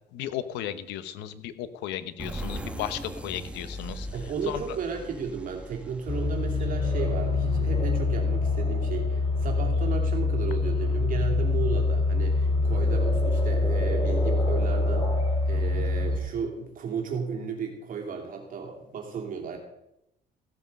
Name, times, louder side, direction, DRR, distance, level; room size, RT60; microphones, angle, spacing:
voice 1, 0.1-4.1 4.5-4.6, left 11 dB, 90° left, 13 dB, 0.9 m, -35 dB
sound 1, 2.2-7.7, right 1 dB, 5° right, 1.1 m, -39 dB
voice 2, 4.1-15.2 15.5-19.6, right 6 dB, 55° right, 2 dB, 2.6 m, -34 dB
sound 2, 6.1-16.2, left 3 dB, 35° left, 4.0 m, -25 dB
15.5 x 7.6 x 5.3 m, 0.86 s
cardioid pair, 110°, 17 cm